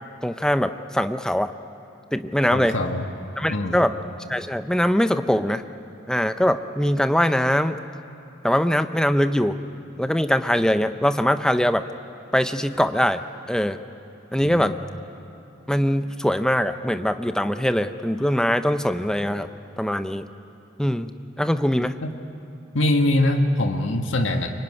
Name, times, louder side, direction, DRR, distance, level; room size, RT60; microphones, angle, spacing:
voice 1, 0.2-1.5 2.1-2.8 3.4-3.9 4.3-5.6 6.1-7.8 8.4-9.6 10.0-11.9 12.3-13.2 13.5-13.8 14.3-14.8 15.7-19.5 19.8-20.3 20.8-21.1 21.4-22.0, equal, 5° left, 10 dB, 0.6 m, -22 dB
voice 2, 2.5-3.1 3.5-3.8 14.4-14.7 22.0-22.1 22.7-24.5, left 1 dB, 85° left, 4 dB, 1.6 m, -23 dB
24.5 x 22.5 x 9.7 m, 2.8 s
head